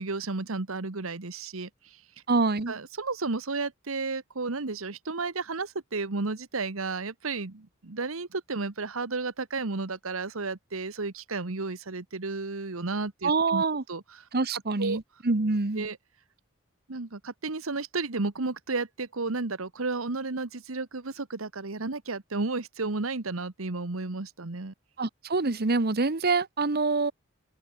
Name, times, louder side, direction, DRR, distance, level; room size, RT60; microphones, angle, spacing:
voice 1, 0.0-2.0 2.7-13.6 13.9-14.2 14.8-15.0 15.7-16.0 16.9-24.7, right 3 dB, 80° right, 1.3 m, -33 dB
voice 2, 2.3-2.7 13.2-13.8 14.3-15.9 25.0-27.1, right 3 dB, 50° right, 1.1 m, -26 dB
open air
head